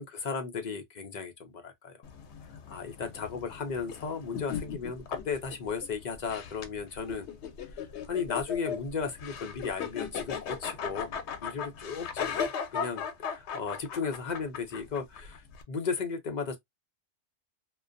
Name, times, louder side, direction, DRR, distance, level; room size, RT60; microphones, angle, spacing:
voice 1, 0.0-2.0 2.7-7.3 7.7-11.1 11.4-12.3 12.7-16.6, left 5 dB, 55° left, 0.5 m, -35 dB
sound 1, 2.0-15.6, left 7 dB, 75° left, 0.8 m, -38 dB
2.4 x 2.2 x 2.4 m
omnidirectional pair, 1.2 m